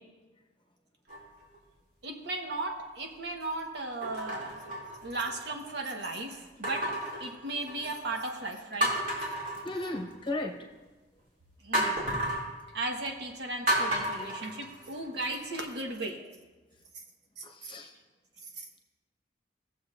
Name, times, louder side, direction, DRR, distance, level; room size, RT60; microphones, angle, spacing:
sound 1, 1.1-1.6 2.3-2.4 4.0-5.5 6.6-8.0 8.4-8.5 8.8-10.3 11.7-12.5 13.7-15.2 15.7-15.8, right 1 dB, 50° right, 2.5 m, -32 dB
voice 1, 2.0-4.8 5.0-6.9 7.2-8.9 11.6-12.2 12.7-16.2 17.4-17.9 18.6-18.7, right 2 dB, 70° right, 2 dB, 1.2 m, -36 dB
voice 2, 9.6-10.5 17.4-17.9, left 2 dB, 30° left, 1 dB, 1.0 m, -35 dB
18.0 x 7.1 x 2.5 m, 1.2 s
head